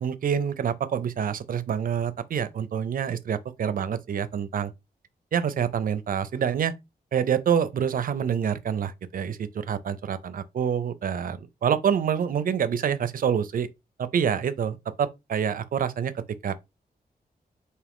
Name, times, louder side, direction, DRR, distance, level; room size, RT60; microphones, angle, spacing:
voice 1, 0.0-4.7 5.3-6.7 7.1-13.7 14.0-16.6, right 8 dB, 60° right, 0.5 m, -27 dB
3.6 x 2.7 x 3.5 m
wide cardioid pair, 160°, 16 cm